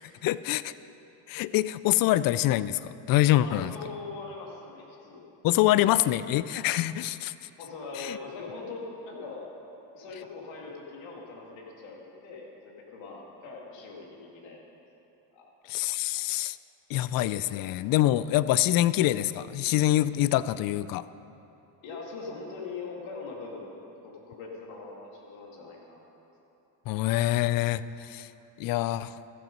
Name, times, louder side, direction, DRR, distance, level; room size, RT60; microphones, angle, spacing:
voice 1, 0.2-0.7 1.3-3.7 5.4-7.3 8.0-8.2 15.7-16.6 16.9-21.0 26.9-28.3 28.6-29.1, left 14 dB, 50° left, 17 dB, 0.4 m, -25 dB
voice 2, 3.4-5.3 7.6-9.5 9.9-14.6 15.3-15.5 17.4-17.7 21.8-26.0 26.9-27.0, left 4 dB, 70° left, -1 dB, 2.4 m, -41 dB
15.0 x 7.8 x 5.2 m, 3.0 s
supercardioid pair, 90°, 47 cm